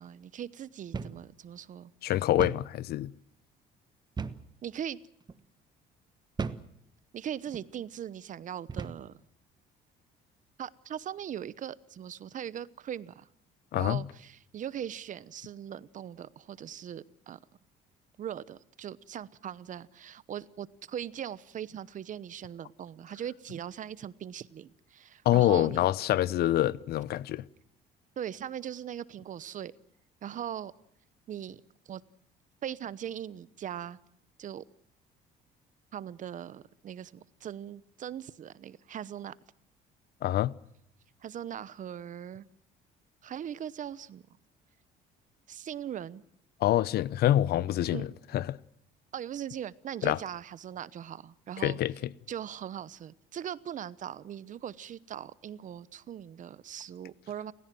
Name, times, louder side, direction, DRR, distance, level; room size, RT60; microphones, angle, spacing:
voice 1, 0.0-1.9 4.6-5.0 7.1-9.2 10.6-13.3 13.8-17.4 18.2-25.8 28.2-29.7 30.2-30.7 31.3-31.6 31.9-32.0 32.6-34.0 34.4-34.6 35.9-39.4 41.2-42.5 43.2-44.2 45.5-46.2 47.9-48.2 49.1-51.8 52.3-57.5, right 9 dB, 50° right, 0.9 m, -40 dB
sound 1, 0.9-1.2 1.6-1.7 2.4-2.7 4.2-4.5 5.2-5.4 6.4-6.7 7.5-7.7 8.7-9.1, right 5 dB, 25° right, 1.2 m, -36 dB
voice 2, 2.0-3.1 13.7-14.0 25.2-27.4 40.2-40.5 46.6-48.1 48.3-48.6 50.0-50.2 51.6-51.9, left 13 dB, 70° left, 0.8 m, -26 dB
29.0 x 16.0 x 7.7 m
cardioid pair, 110°, 17 cm